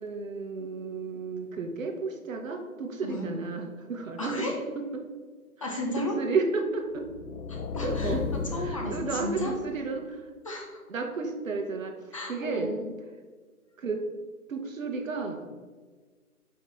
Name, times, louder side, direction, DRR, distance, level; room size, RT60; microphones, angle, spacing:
voice 1, 0.0-4.5 4.9-5.0 5.6-7.1 7.8-8.2 8.5-10.3 10.9-12.7 13.8-14.0 14.5-15.5, right 4 dB, 60° right, 5 dB, 0.8 m, -32 dB
voice 2, 4.2-4.5 5.6-6.2 7.5-8.2 8.5-9.5 10.4-10.8 12.1-12.8, left 1 dB, 20° left, 0 dB, 0.6 m, -34 dB
sound 1, 7.0-9.9, left 4 dB, 75° left, 0.7 m, -34 dB
4.8 x 4.6 x 4.3 m, 1.4 s
figure-of-eight pair, 150°, 45 cm